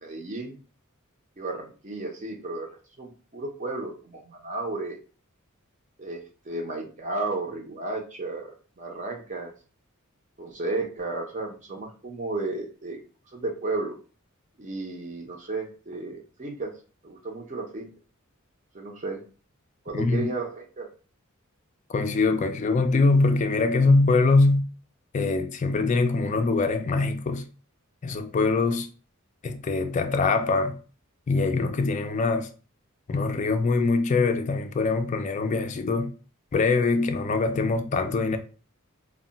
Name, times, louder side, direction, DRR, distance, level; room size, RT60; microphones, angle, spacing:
voice 1, 0.0-0.6 1.4-2.7 3.0-5.0 6.0-9.5 10.4-13.0 13.3-13.9 14.6-16.7 17.0-17.9 18.7-19.2 19.9-20.9, right 2 dB, 35° right, 0.6 m, -33 dB
voice 2, 19.9-20.3 21.9-24.7 25.1-27.5 28.0-28.9 29.4-30.8 31.3-32.5 33.1-36.1 36.5-38.4, left 3 dB, 35° left, 0.3 m, -23 dB
2.2 x 2.1 x 3.8 m
head